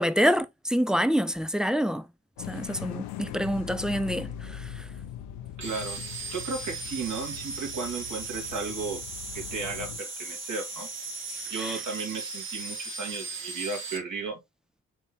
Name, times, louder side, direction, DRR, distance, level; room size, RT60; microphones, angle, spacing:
voice 1, 0.0-2.0 2.5-4.3, equal, ahead, 0.3 m, -26 dB
sound 1, 2.4-10.0, left 10 dB, 70° left, 0.6 m, -41 dB
sound 2, 5.6-14.0, right 3 dB, 30° right, 1.4 m, -37 dB
voice 2, 5.6-6.0 6.3-9.0 9.3-10.9 11.5-14.4, right 4 dB, 55° right, 2.1 m, -34 dB
4.3 x 3.7 x 2.8 m
hypercardioid pair, 40°, 39 cm